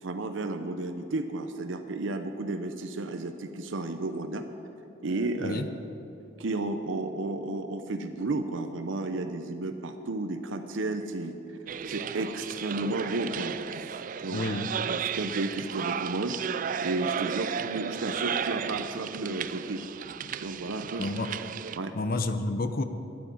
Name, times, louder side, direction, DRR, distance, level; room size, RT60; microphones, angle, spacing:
voice 1, 0.0-4.4 5.0-5.6 6.4-11.3 11.8-14.4 14.8-16.4 16.8-19.8 20.4-21.1 21.7-21.9, right 2 dB, 75° right, 7 dB, 0.7 m, -32 dB
sound 1, 11.7-21.8, right 7 dB, 45° right, 0.3 m, -34 dB
voice 2, 14.3-14.7 21.0-21.3 21.9-22.8, left 2 dB, 50° left, 9 dB, 0.7 m, -29 dB
10.5 x 9.1 x 8.6 m, 2.8 s
head